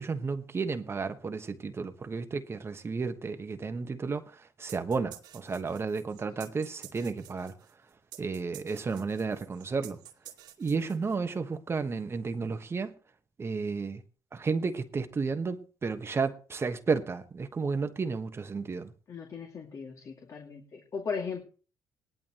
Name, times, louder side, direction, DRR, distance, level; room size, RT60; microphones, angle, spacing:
voice 1, 0.0-7.5 8.2-10.0 10.6-13.0 13.4-14.0 14.3-18.9, right 4 dB, 35° right, 1.3 m, -32 dB
sound 1, 4.7-11.4, right 12 dB, 70° right, 2.3 m, -50 dB
voice 2, 19.1-21.4, left 5 dB, 50° left, 2.4 m, -37 dB
18.0 x 11.5 x 3.1 m
supercardioid pair, 75°, 7 cm